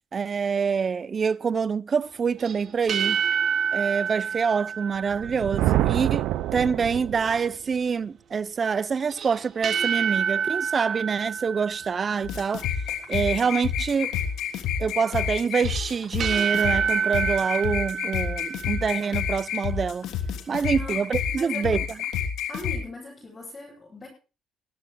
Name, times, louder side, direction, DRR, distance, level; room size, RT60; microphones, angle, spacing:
voice 1, 0.1-3.2 3.7-6.3 6.5-12.7 13.1-14.1 14.8-20.1 20.5-21.8, right 6 dB, 35° right, 0.6 m, -26 dB
Medieval bells of doom, 2.4-5.7 9.1-12.4 15.5-19.1, right 7 dB, 50° right, 2.3 m, -28 dB
Thunder, 5.1-7.5, right 14 dB, 90° right, 0.6 m, -26 dB
sound 1, 12.2-22.8, left 8 dB, 85° left, 3.2 m, -29 dB
voice 2, 21.4-21.8 22.5-24.1, left 2 dB, 25° left, 7.9 m, -39 dB
23.0 x 15.5 x 2.2 m
cardioid pair, 125°, 0 cm